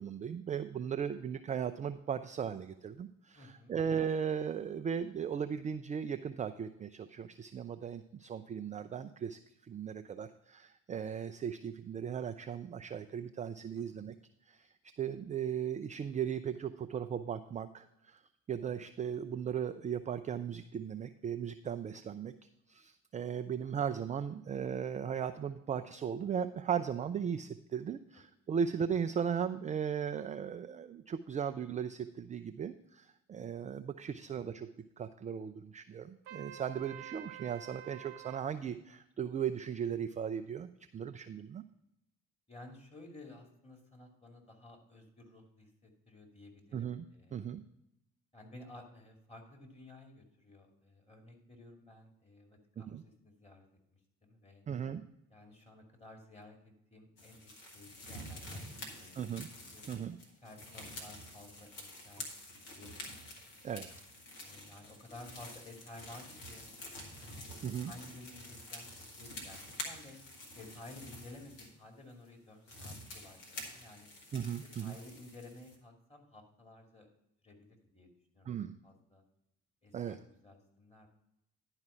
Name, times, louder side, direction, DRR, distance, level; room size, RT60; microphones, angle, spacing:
voice 1, 0.0-14.1 14.5-14.7 15.0-18.2 18.5-22.3 22.7-34.7 35.0-41.6 46.7-47.6 52.8-53.0 54.7-55.0 59.2-59.5 59.9-60.2 62.2-62.3 63.6-63.9 67.2-67.9 74.3-75.0 78.5-78.8 79.9-80.2, right 8 dB, 20° right, 9 dB, 0.3 m, -37 dB
voice 2, 3.3-3.7 13.8-14.1 23.6-23.7 34.1-34.4 42.5-47.4 48.3-54.6 55.3-59.2 59.7-59.8 60.4-63.0 64.4-66.7 67.9-70.2 70.6-74.1 74.6-77.1 77.4-78.1 78.3-78.5 78.8-79.2 79.8-81.1, left 2 dB, 15° left, 2 dB, 2.6 m, -54 dB
Trumpet, 36.3-38.5, right 11 dB, 70° right, 0.8 m, -49 dB
sound 1, 57.2-71.7 72.3-72.4 72.7-75.8, left 1 dB, 70° left, 1.8 m, -48 dB
10.5 x 4.9 x 5.6 m, 0.80 s
figure-of-eight pair, 50°, 40 cm